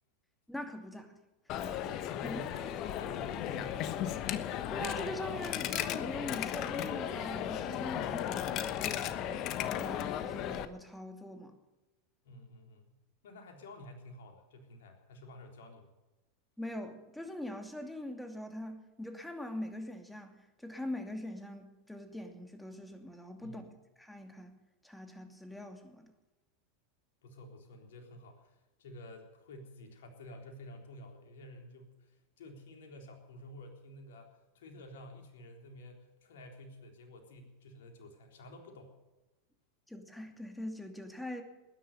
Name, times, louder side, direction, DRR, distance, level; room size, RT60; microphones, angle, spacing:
voice 1, 0.5-1.1 2.2-2.4 4.7-9.4 9.7-11.5 16.6-23.6 24.0-24.5 24.8-26.1 39.9-41.4, left 1 dB, 5° left, 5 dB, 2.7 m, -42 dB
Coin (dropping), 1.5-10.7, left 10 dB, 45° left, 1.2 m, -35 dB
voice 2, 2.2-4.2 12.2-13.0 13.2-15.9 23.4-23.7 27.2-39.0, left 1 dB, 65° left, 3 dB, 3.7 m, -51 dB
20.0 x 10.5 x 6.9 m, 1.1 s
figure-of-eight pair, 90°, 0 cm